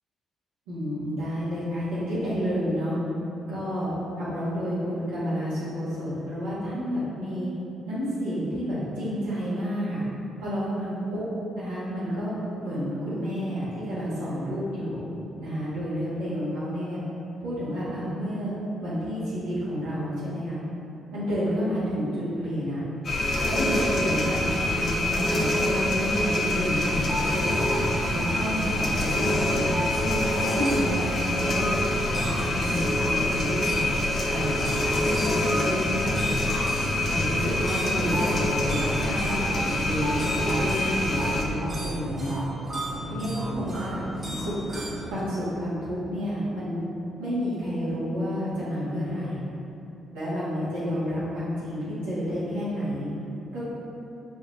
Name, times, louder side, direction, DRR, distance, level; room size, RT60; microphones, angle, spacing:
voice 1, 0.7-3.0 3.5-7.5 7.9-10.0 10.4-11.3 11.6-12.3 12.6-15.0 15.4-17.0 17.4-20.6 21.1-22.8 23.4-27.7 28.1-30.2 30.5-31.7 32.1-33.9 34.3-36.3 37.0-42.4 43.1-44.1 44.3-44.5 45.1-46.8 47.2-49.4 50.1-53.1 53.5-53.7, equal, 80° right, -12 dB, 1.3 m, -30 dB
sound 1, 23.0-41.4, left 1 dB, 50° left, 0.5 m, -26 dB
sound 2, 27.1-45.2, right 1 dB, 35° right, 0.9 m, -34 dB
5.0 x 2.7 x 2.6 m, 2.8 s
hypercardioid pair, 40°, 0 cm